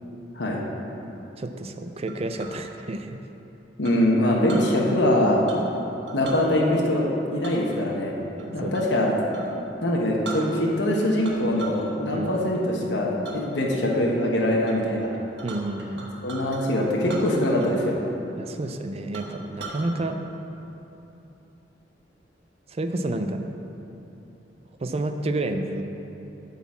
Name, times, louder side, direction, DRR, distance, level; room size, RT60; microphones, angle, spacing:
voice 1, 1.4-3.2 8.4-8.8 12.1-12.3 15.4-16.1 18.4-20.2 22.7-23.5 24.8-25.8, right 2 dB, 35° right, 7 dB, 0.5 m, -30 dB
Chink clink, 2.1-2.6 3.8-4.7 5.5-5.8 6.1-6.4 7.4-9.0 9.3-9.5 9.9-10.0 10.2-10.9 11.2-11.9 12.2-12.6 13.2-13.4 13.9-14.3 14.6-14.8 15.0-16.6 17.0-17.8 18.1-18.2 18.7-18.8 19.1-19.9, right 3 dB, 75° right, 1.2 m, -40 dB
voice 2, 3.8-5.4 6.1-8.1 8.5-9.1 9.8-15.1 16.2-18.0, left 1 dB, 80° left, -2 dB, 1.1 m, -23 dB
9.2 x 4.1 x 7.2 m, 3.0 s
head